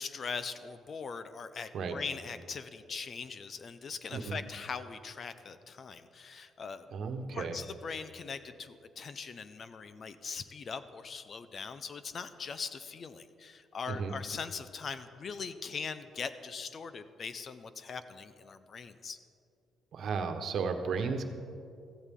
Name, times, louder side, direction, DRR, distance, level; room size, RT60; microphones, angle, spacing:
voice 1, 0.0-6.9 7.3-19.2, left 5 dB, 50° left, 12 dB, 0.8 m, -41 dB
voice 2, 6.9-7.6 13.9-14.1 19.9-21.2, right 5 dB, 65° right, 6 dB, 1.2 m, -34 dB
15.5 x 15.0 x 3.8 m, 2.6 s
cardioid pair, 90°, 0 cm